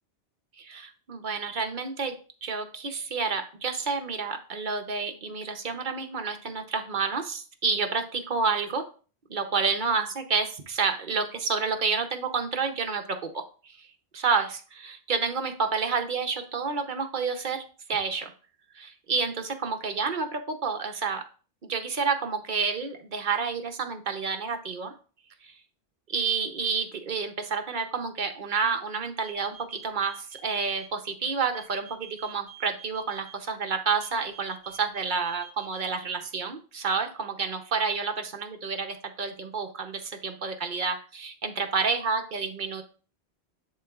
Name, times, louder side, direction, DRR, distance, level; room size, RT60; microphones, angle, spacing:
voice 1, 0.6-2.1 2.4-8.8 9.3-13.9 14.1-18.3 18.7-21.2 21.6-24.9 25.4-25.5 26.1-42.8, right 5 dB, 55° right, 6 dB, 0.8 m, -29 dB
sound 1, 29.2-30.9 31.5-33.3 34.0-35.8, right 8 dB, 20° right, 2.8 m, -48 dB
10.5 x 3.8 x 2.4 m, 0.37 s
omnidirectional pair, 1.1 m